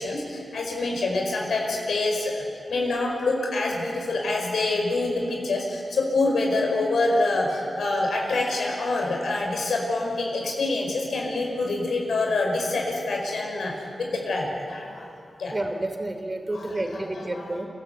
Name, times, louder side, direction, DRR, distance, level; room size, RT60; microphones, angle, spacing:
voice 1, 0.0-2.4 2.7-13.7 14.0-15.1 15.4-15.5 16.5-17.5, left 2 dB, 85° left, 0 dB, 5.1 m, -26 dB
voice 2, 15.5-17.7, right 1 dB, 35° right, 6 dB, 3.1 m, -30 dB
30.0 x 13.0 x 8.3 m, 2.6 s
cardioid pair, 50°, 0 cm